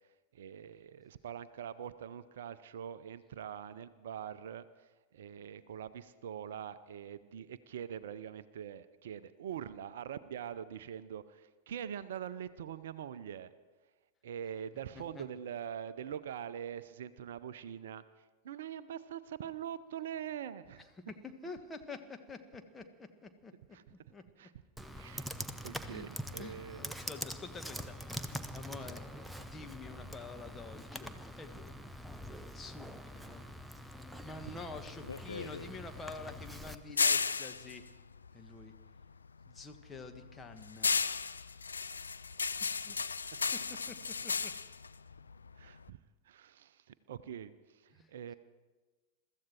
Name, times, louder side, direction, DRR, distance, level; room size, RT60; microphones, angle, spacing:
voice 1, 0.3-4.9 5.1-13.5 14.2-18.0 18.4-20.9 23.7-23.8 24.4-24.5 24.9-25.3 25.6-27.0 34.4-34.5 45.6-46.0 46.3-48.3, right 9 dB, 60° right, 15 dB, 0.6 m, -43 dB
voice 2, 14.9-15.2 21.1-23.5 23.9-24.5 25.8-26.1 26.4-29.1 29.4-31.7 32.5-32.9 33.1-33.4 34.2-37.8 38.3-38.7 39.5-40.9 42.6-43.0 43.5-44.5 47.9-48.1, left 3 dB, 15° left, 6 dB, 1.5 m, -48 dB
Computer keyboard, 24.8-36.7, equal, 5° right, 0.9 m, -44 dB
sound 1, 34.6-39.1 39.5-45.9, left 5 dB, 75° left, 0.4 m, -35 dB
22.5 x 14.0 x 4.5 m, 1.2 s
figure-of-eight pair, 90°, 0 cm